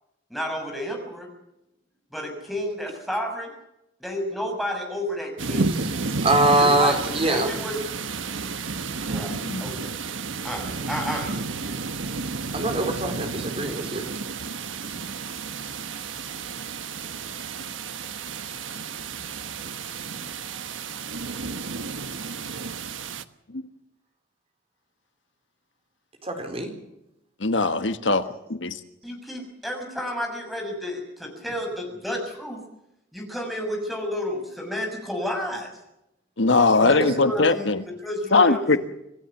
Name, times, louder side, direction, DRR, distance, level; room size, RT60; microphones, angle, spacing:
voice 1, 0.3-1.3 2.1-3.5 4.0-5.8 6.6-7.8 9.0-10.0 10.4-11.7 29.0-32.6 33.1-35.7 36.9-38.8, equal, ahead, 3 dB, 6.4 m, -31 dB
sound 1, 5.4-23.2, right 4 dB, 85° right, 1.3 m, -32 dB
voice 2, 6.2-7.5 12.5-14.0 26.2-26.7 37.0-37.1, right 2 dB, 30° right, 6 dB, 4.3 m, -22 dB
voice 3, 27.4-28.2 28.5-28.8 36.4-37.8 38.3-38.8, left 3 dB, 70° left, 10 dB, 1.4 m, -20 dB
27.0 x 16.5 x 7.3 m, 0.85 s
head